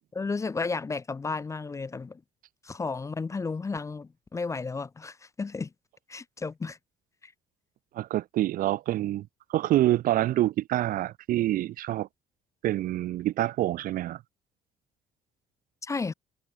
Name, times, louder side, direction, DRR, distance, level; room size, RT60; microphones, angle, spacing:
voice 1, 0.1-2.2 2.6-5.7 6.1-6.8 7.2-7.3 15.8-16.1, left 4 dB, 20° left, 0.4 m, -33 dB
voice 2, 7.9-12.1 12.6-14.2, right 14 dB, 55° right, 0.4 m, -26 dB
cardioid pair, 110°, 17 cm